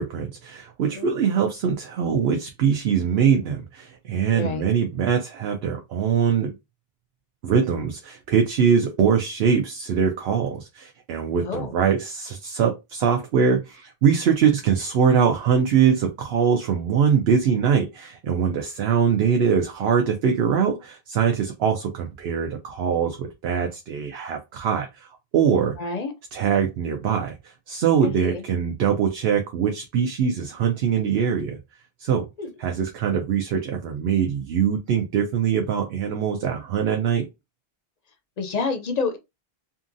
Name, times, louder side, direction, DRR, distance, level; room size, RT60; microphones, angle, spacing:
voice 1, 0.0-6.5 7.4-25.8 26.3-31.6 32.0-32.3 32.6-37.3, right 7 dB, 80° right, 0.8 m, -22 dB
voice 2, 4.3-4.6 11.4-11.7 25.8-26.1 28.2-28.4 32.4-32.5 38.4-39.2, left 4 dB, 55° left, 0.5 m, -28 dB
2.7 x 2.6 x 2.5 m
omnidirectional pair, 1.1 m